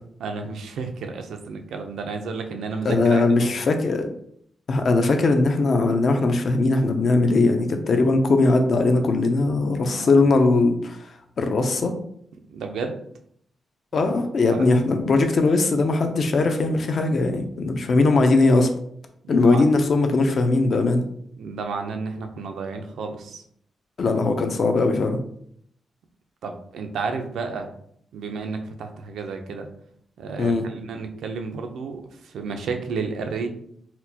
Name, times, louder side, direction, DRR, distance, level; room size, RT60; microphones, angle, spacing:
voice 1, 0.2-3.5 9.8-10.2 12.5-13.0 13.9-14.0 14.5-14.6 19.2-19.6 21.4-23.4 26.4-27.7 28.1-29.7 30.2-33.5, right 4 dB, 80° right, 5 dB, 0.5 m, -32 dB
voice 2, 2.8-4.1 4.7-11.1 11.4-11.9 13.9-18.7 19.3-21.0 24.0-25.2 30.4-30.6, left 3 dB, 45° left, 6 dB, 0.4 m, -20 dB
4.2 x 2.1 x 2.7 m, 0.66 s
wide cardioid pair, 160°, 0 cm